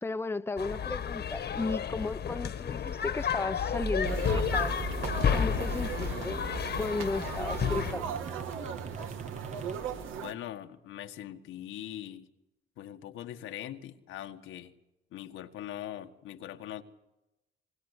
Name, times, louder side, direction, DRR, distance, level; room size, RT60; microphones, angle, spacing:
voice 1, 0.0-4.8 5.3-6.4 6.7-8.1, left 3 dB, 10° left, 0.9 m, -34 dB
sound 1, 0.6-7.9, left 8 dB, 55° left, 1.5 m, -32 dB
sound 2, 3.8-10.2, right 3 dB, 35° right, 1.4 m, -40 dB
sound 3, 4.0-10.3, right 7 dB, 85° right, 2.3 m, -38 dB
voice 2, 10.2-12.3 12.8-14.7 15.1-16.8, left 12 dB, 90° left, 1.7 m, -41 dB
25.0 x 20.5 x 8.2 m
cardioid pair, 90°, 20 cm